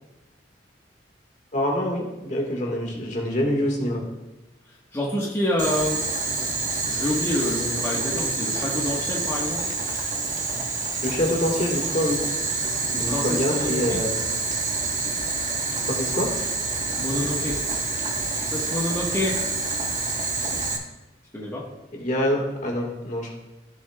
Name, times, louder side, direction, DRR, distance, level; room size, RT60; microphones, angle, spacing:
voice 1, 1.5-4.0 11.0-12.2 13.0-14.2 15.9-16.3 21.9-23.3, left 1 dB, 45° left, 0 dB, 1.7 m, -25 dB
voice 2, 4.9-6.0 6.9-9.6 12.9-13.8 17.0-17.6 18.4-19.4 21.3-21.7, left 1 dB, 15° left, -4 dB, 1.3 m, -27 dB
Boiling, 5.6-20.8, right 3 dB, 45° right, 1.3 m, -27 dB
15.5 x 6.3 x 2.3 m, 0.99 s
head